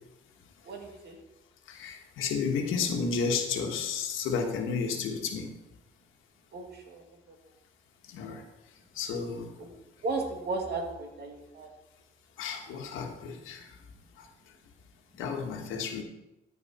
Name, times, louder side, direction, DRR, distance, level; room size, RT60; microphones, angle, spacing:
voice 1, 0.6-1.2 6.5-7.4 9.6-9.7 10.0-11.7, right 3 dB, 55° right, 2 dB, 2.1 m, -35 dB
voice 2, 1.7-5.5 8.1-8.4 9.0-9.5 12.4-13.6 15.2-16.0, left 5 dB, 90° left, 4 dB, 1.3 m, -32 dB
13.5 x 4.7 x 4.2 m, 0.97 s
cardioid pair, 90°, 20 cm